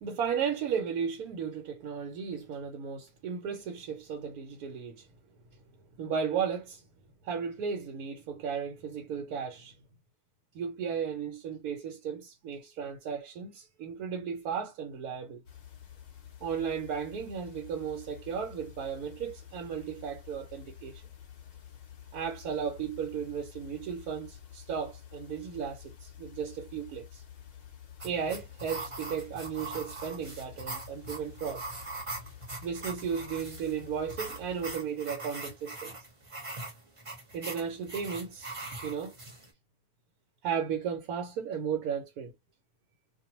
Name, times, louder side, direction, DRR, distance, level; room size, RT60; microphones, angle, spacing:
voice 1, 0.0-5.1 6.0-6.8 7.2-9.7 10.5-15.4 16.4-21.0 22.1-27.2 28.0-31.6 32.6-36.0 37.3-38.5 38.8-39.2 40.4-42.3, right 7 dB, 80° right, 1.1 m, -35 dB
sound 1, 15.4-34.7, left 9 dB, 60° left, 0.4 m, -50 dB
sound 2, 28.0-39.5, right 2 dB, 25° right, 0.7 m, -42 dB
2.5 x 2.2 x 2.8 m
omnidirectional pair, 1.6 m